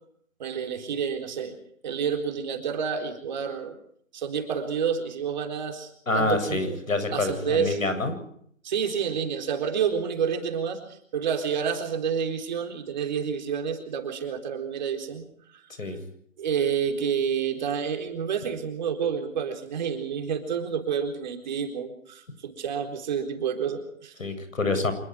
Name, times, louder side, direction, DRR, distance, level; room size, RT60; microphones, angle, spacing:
voice 1, 0.4-1.6 1.8-3.8 4.1-6.8 7.1-7.8 8.6-15.3 15.5-15.9 16.4-24.2, right 7 dB, 35° right, 4 dB, 4.1 m, -29 dB
voice 2, 6.1-8.2 15.8-16.0 24.2-24.9, left 2 dB, 80° left, 9 dB, 7.9 m, -27 dB
27.0 x 22.0 x 4.9 m, 0.65 s
figure-of-eight pair, 155°, 40 cm